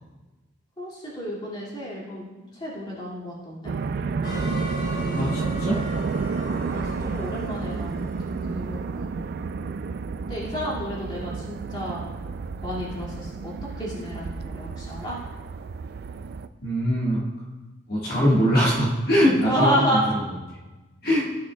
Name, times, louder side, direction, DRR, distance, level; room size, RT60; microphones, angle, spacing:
voice 1, 0.8-2.3 2.5-3.7 4.9-5.0 6.5-8.1 8.5-9.2 10.3-12.1 12.6-15.2 19.3-20.0, equal, 25° left, -5 dB, 2.2 m, -30 dB
sound 1, 3.7-16.5, right 4 dB, 55° right, 0.3 m, -31 dB
sound 2, 4.2-9.2, equal, 70° left, 2.3 m, -38 dB
voice 2, 5.1-5.8 16.6-17.2 17.9-20.0 21.0-21.3, equal, 50° left, -6 dB, 1.7 m, -22 dB
14.5 x 6.4 x 2.3 m, 1.2 s
head